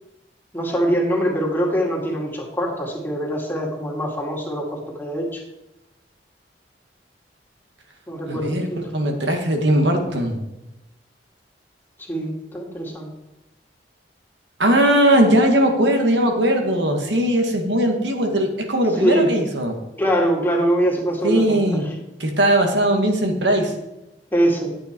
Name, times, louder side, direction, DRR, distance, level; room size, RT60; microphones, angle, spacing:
voice 1, 0.5-5.4 8.1-8.8 12.0-13.1 19.0-19.3 20.0-21.8 24.3-24.7, equal, 10° left, -1 dB, 2.2 m, -23 dB
voice 2, 8.3-10.4 14.6-19.7 21.2-21.8 22.2-23.7, right 1 dB, 90° right, 3 dB, 1.9 m, -19 dB
11.0 x 8.6 x 4.6 m, 0.95 s
head